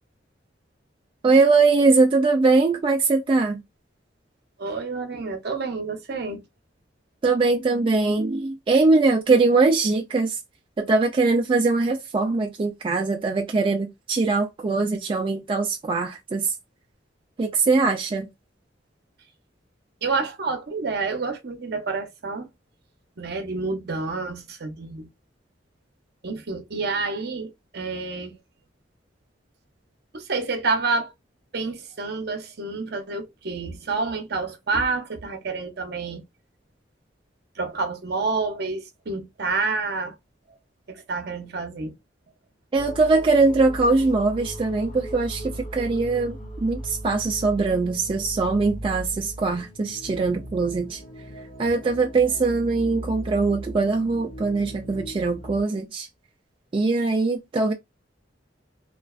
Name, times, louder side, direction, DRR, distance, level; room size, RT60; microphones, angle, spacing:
voice 1, 1.2-3.6 7.2-10.4 10.8-16.5 17.4-18.3 42.7-51.0 51.6-56.1 56.7-57.7, right 3 dB, 30° right, 0.3 m, -21 dB
voice 2, 4.6-6.4 20.0-22.5 23.2-25.1 26.2-28.4 30.1-31.1 31.5-36.2 37.6-40.1 40.9-41.9, right 4 dB, 60° right, 0.7 m, -28 dB
sound 1, 42.7-55.6, equal, 45° left, 0.7 m, -38 dB
2.4 x 2.2 x 2.3 m
head